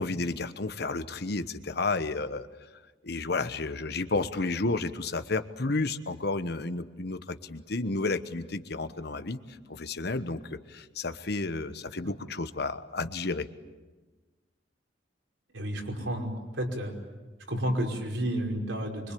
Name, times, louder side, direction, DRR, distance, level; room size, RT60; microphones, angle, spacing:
voice 1, 0.0-2.5 3.0-13.5, left 3 dB, 60° left, 11 dB, 1.2 m, -31 dB
voice 2, 15.5-16.9 17.5-19.1, right 1 dB, 90° right, 0 dB, 5.3 m, -31 dB
25.0 x 24.0 x 8.6 m, 1.2 s
head